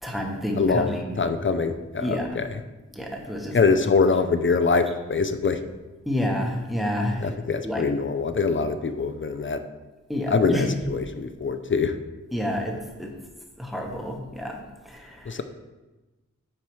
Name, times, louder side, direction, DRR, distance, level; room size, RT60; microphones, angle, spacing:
voice 1, 0.0-1.2 2.0-2.4 2.9-3.6 6.1-7.3 7.6-7.9 10.1-10.6 12.3-13.1 13.6-15.4, left 1 dB, ahead, 1 dB, 1.1 m, -29 dB
voice 2, 0.6-2.5 3.5-5.6 7.2-9.6 10.3-11.9 15.3-15.4, left 4 dB, 40° left, 9 dB, 0.5 m, -24 dB
8.6 x 4.5 x 3.2 m, 1.1 s
wide cardioid pair, 65°, 32 cm